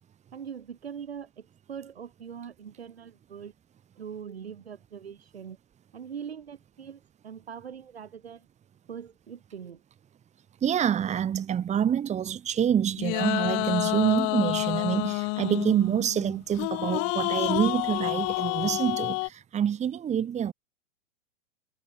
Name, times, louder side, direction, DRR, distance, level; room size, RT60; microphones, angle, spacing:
voice 1, 0.3-3.5 4.0-5.6 5.9-8.5 8.9-9.8, right 7 dB, 80° right, 6.7 m, -42 dB
voice 2, 10.6-20.5, right 9 dB, 20° right, 2.3 m, -27 dB
sound 1, 13.0-19.3, left 40 dB or more, 45° left, 3.1 m, -29 dB
hypercardioid pair, 105°, 31 cm